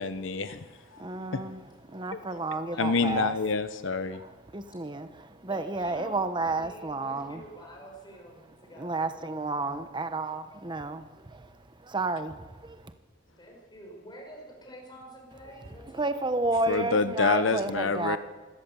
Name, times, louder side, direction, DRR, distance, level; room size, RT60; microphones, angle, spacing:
voice 1, 0.0-0.6 1.3-1.4 2.8-4.2 16.7-18.2, left 4 dB, 85° left, 10 dB, 0.9 m, -27 dB
voice 2, 0.6-3.3 4.0-7.4 8.8-12.9 15.9-18.2, right 2 dB, 25° right, 10 dB, 1.1 m, -32 dB
voice 3, 2.4-3.2 5.5-9.9 13.4-16.1, equal, 25° left, 0 dB, 6.0 m, -48 dB
25.0 x 17.5 x 7.1 m, 1.3 s
head